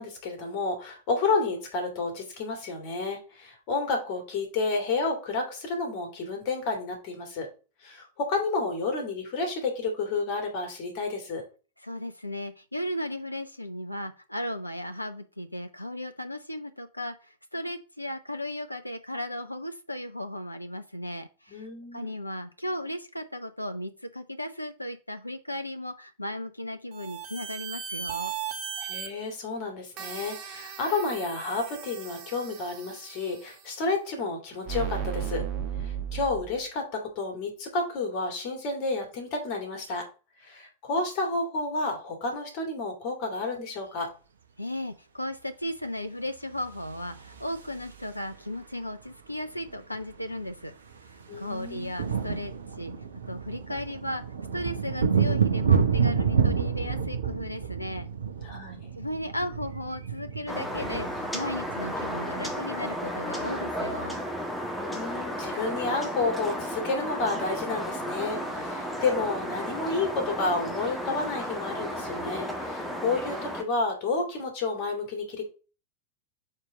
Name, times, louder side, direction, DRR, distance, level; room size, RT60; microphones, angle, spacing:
voice 1, 0.0-7.5 7.8-11.4 21.5-22.1 28.8-35.4 35.8-40.1 40.4-44.1 51.3-51.9 58.4-58.9 64.7-75.4, left 3 dB, 45° left, 3 dB, 2.4 m, -30 dB
voice 2, 11.8-28.4 44.6-50.7 51.1-52.9 53.3-54.2 54.5-58.1 59.0-64.2, left 1 dB, 85° left, 9 dB, 0.5 m, -35 dB
sound 1, 26.9-29.1 30.0-33.3 34.7-36.6, right 8 dB, 40° right, 1.0 m, -36 dB
sound 2, 46.8-48.3 49.7-49.8 49.9-50.2 50.5-62.5, right 6 dB, 70° right, 0.8 m, -29 dB
sound 3, 60.5-73.6, equal, 5° left, 1.3 m, -33 dB
4.5 x 4.4 x 4.9 m, 0.34 s
figure-of-eight pair, 90°, 0 cm